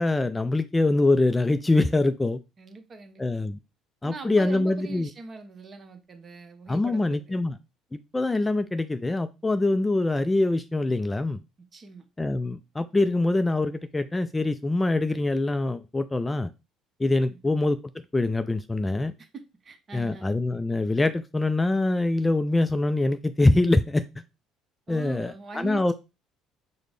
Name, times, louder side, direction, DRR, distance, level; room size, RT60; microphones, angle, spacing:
voice 1, 0.0-2.4 3.2-3.6 4.0-5.1 6.7-7.6 8.1-11.4 12.2-16.5 17.0-17.8 18.1-19.1 19.9-24.2 24.9-25.9, left 2 dB, 15° left, 0.3 m, -24 dB
voice 2, 2.6-3.2 4.0-7.4 11.7-12.0 17.3-17.6 19.6-20.3 24.9-25.9, right 4 dB, 35° right, 0.8 m, -42 dB
4.9 x 2.1 x 3.1 m
hypercardioid pair, 55°, 0 cm